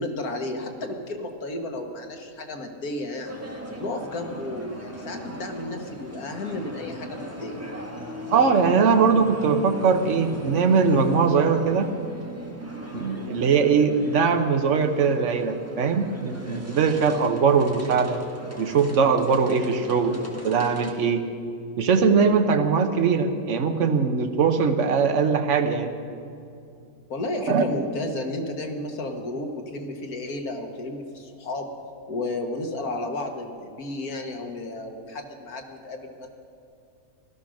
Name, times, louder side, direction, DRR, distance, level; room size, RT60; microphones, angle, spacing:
voice 1, 0.0-3.3 3.8-7.6 27.1-31.7 32.1-36.3, left 2 dB, 85° left, 3 dB, 1.9 m, -32 dB
sound 1, 3.2-20.9, equal, 10° right, 1.7 m, -38 dB
voice 2, 8.3-11.9 12.9-18.2 18.6-20.2 20.4-21.3 21.8-25.9 27.5-27.6, right 5 dB, 60° right, 6 dB, 1.3 m, -21 dB
16.5 x 13.0 x 6.4 m, 2.5 s
omnidirectional pair, 1.5 m